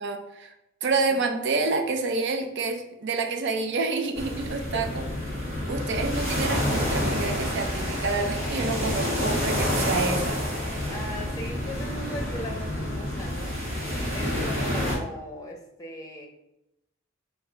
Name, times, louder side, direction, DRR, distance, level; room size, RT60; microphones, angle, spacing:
voice 1, 0.0-0.5 0.8-5.0 5.7-10.5, right 3 dB, 60° right, 5 dB, 0.6 m, -28 dB
sound 1, 4.2-15.0, left 1 dB, 85° right, 1.6 m, -28 dB
voice 2, 4.7-5.3 10.9-16.3, equal, 15° left, 1 dB, 0.6 m, -39 dB
3.8 x 2.7 x 4.5 m, 0.87 s
head